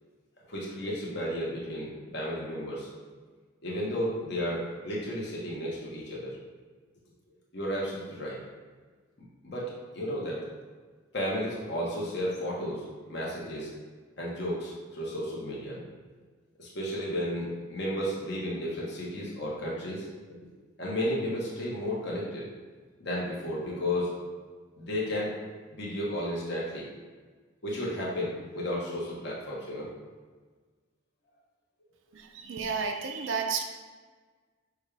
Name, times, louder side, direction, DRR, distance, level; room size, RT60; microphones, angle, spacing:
voice 1, 0.5-2.9 3.6-6.3 7.5-8.4 9.4-10.4 11.1-13.7 14.2-15.8 16.6-20.0 20.8-22.4 23.0-24.1 24.8-25.3 25.7-26.8 27.6-29.9, equal, 55° left, -5 dB, 1.2 m, -33 dB
voice 2, 32.1-33.6, right 5 dB, 65° right, 4 dB, 0.5 m, -32 dB
6.3 x 2.4 x 3.3 m, 1.4 s
head